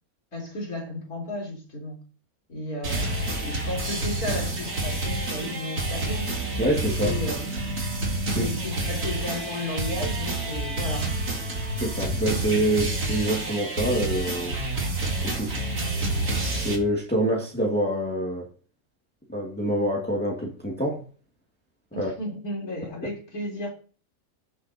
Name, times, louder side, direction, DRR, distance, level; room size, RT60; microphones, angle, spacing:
voice 1, 0.3-2.0 2.5-6.4 7.0-7.8 8.3-11.1 21.9-23.7, left 1 dB, 75° left, 4.0 m, -34 dB
sound 1, 2.8-16.8, right 2 dB, 80° right, 2.9 m, -28 dB
voice 2, 6.6-7.2 8.3-8.5 11.8-14.6 15.2-15.6 16.5-18.5 19.3-21.0 22.0-22.1, right 1 dB, 5° left, 2.1 m, -26 dB
17.0 x 7.9 x 2.8 m
omnidirectional pair, 1.6 m